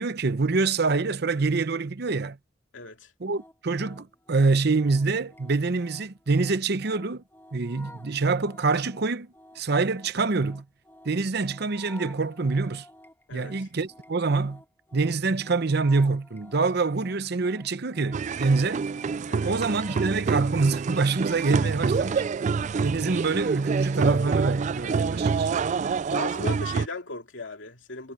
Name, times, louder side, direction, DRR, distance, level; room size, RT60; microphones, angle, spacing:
voice 1, 0.0-2.4 3.2-7.2 7.5-9.3 9.6-10.6 11.0-12.8 13.3-14.6 14.9-18.8 19.4-22.2 22.8-25.5, right 3 dB, 60° right, 0.8 m, -25 dB
voice 2, 2.7-3.1 13.3-13.5 19.3-19.5 21.6-22.0 24.8-25.0 26.1-28.1, left 3 dB, 85° left, 2.4 m, -38 dB
sound 1, 3.2-20.3, left 1 dB, 10° left, 1.5 m, -51 dB
sound 2, 18.1-26.9, right 5 dB, 40° right, 0.3 m, -27 dB
head